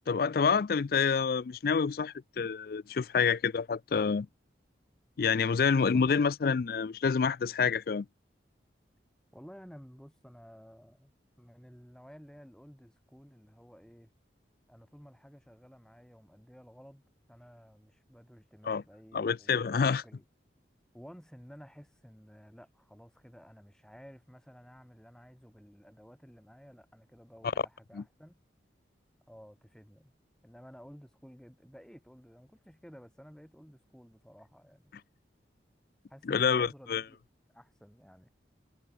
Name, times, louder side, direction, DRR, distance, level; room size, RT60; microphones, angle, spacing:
voice 1, 0.1-4.3 5.2-8.1 18.7-18.8 19.1-20.0 27.9-28.0 36.3-37.0, left 5 dB, 55° left, 0.4 m, -27 dB
voice 2, 9.3-14.1 14.7-20.2 20.9-28.4 29.3-30.1 30.4-34.9 36.1-37.2 37.5-38.3, equal, 5° left, 4.6 m, -54 dB
head